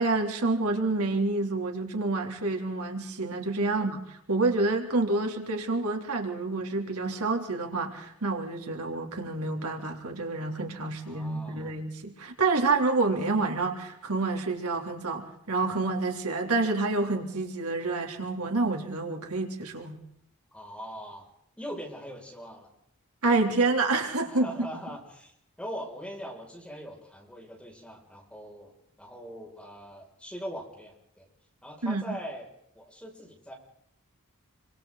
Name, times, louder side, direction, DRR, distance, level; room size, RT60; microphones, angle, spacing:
voice 1, 0.0-20.0 23.2-24.7 31.8-32.0, right 3 dB, 90° right, 2 dB, 3.5 m, -28 dB
voice 2, 11.0-11.7 20.5-21.3 21.6-22.7 24.3-25.3 25.6-31.3 31.6-32.5 32.7-33.5, equal, 5° left, -1 dB, 6.7 m, -41 dB
28.0 x 25.5 x 4.1 m, 0.74 s
head